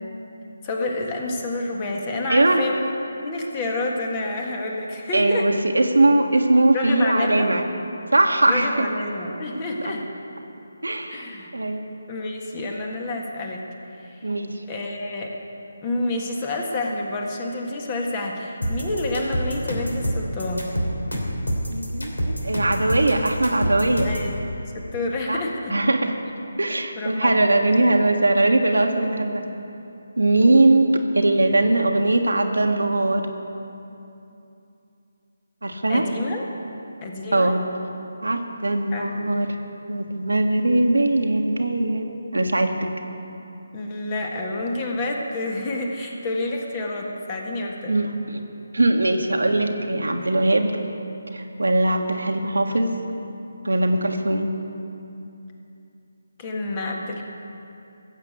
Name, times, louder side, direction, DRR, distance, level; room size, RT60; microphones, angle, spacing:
voice 1, 0.6-2.9 3.2-5.5 6.7-7.5 8.5-10.1 11.1-11.5 12.1-13.6 14.0-14.2 14.7-15.3 15.8-20.7 24.0-24.3 24.7-25.8 26.9-27.7 35.9-36.4 37.0-37.6 38.9-39.5 43.7-48.0 56.4-57.2, left 2 dB, 25° left, 0 dB, 1.7 m, -29 dB
voice 2, 2.3-2.6 5.1-7.7 8.1-8.9 9.8-9.9 10.8-11.8 14.2-14.6 21.7-24.1 25.3-25.4 25.7-26.2 26.6-29.4 30.2-33.3 35.6-36.0 37.3-37.6 38.2-39.5 39.9-42.9 47.9-48.4 48.7-50.8 51.3-53.0 53.6-54.5, right 2 dB, 80° right, 4 dB, 1.4 m, -20 dB
sound 1, 18.6-24.3, equal, 85° left, 2.9 m, -26 dB
15.0 x 7.3 x 8.2 m, 2.8 s
figure-of-eight pair, 155°, 0 cm